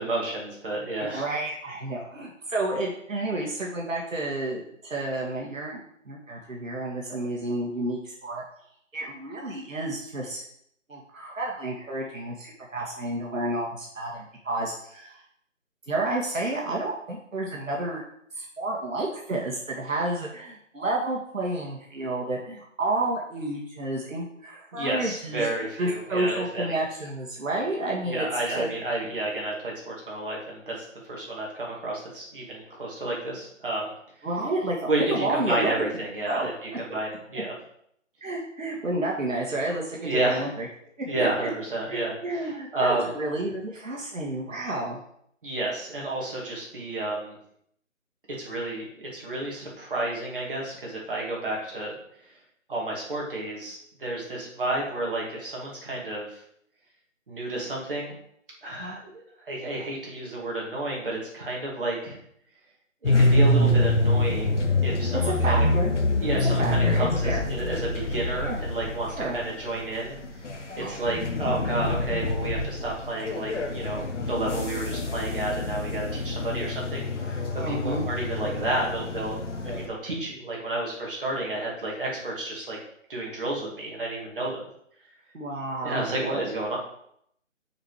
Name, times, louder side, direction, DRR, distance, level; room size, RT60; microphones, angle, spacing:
voice 1, 0.0-1.3 24.7-26.8 28.0-33.9 34.9-37.5 40.0-40.5 41.0-43.1 45.4-47.4 48.4-51.9 52.2-52.3 52.7-56.4 57.3-58.1 58.6-59.0 59.5-62.2 63.0-65.7 66.2-70.2 70.8-79.4 79.6-82.8 83.1-84.6 85.8-86.8, right 2 dB, 40° right, -3 dB, 2.4 m, -31 dB
voice 2, 1.1-5.8 6.1-8.4 8.9-10.4 10.9-15.2 15.9-18.0 18.3-28.3 28.6-28.7 34.2-35.9 36.3-36.5 38.2-40.7 41.2-41.5 41.9-45.0 58.8-59.0 65.2-65.9 66.6-67.5 68.4-68.6 69.2-69.4 70.8-70.9 77.6-78.0 85.3-86.4, right 2 dB, 75° right, -2 dB, 1.7 m, -30 dB
sound 1, 63.0-79.9, left 1 dB, 60° left, 1.3 m, -26 dB
6.5 x 4.4 x 4.9 m, 0.70 s
figure-of-eight pair, 165°, 40 cm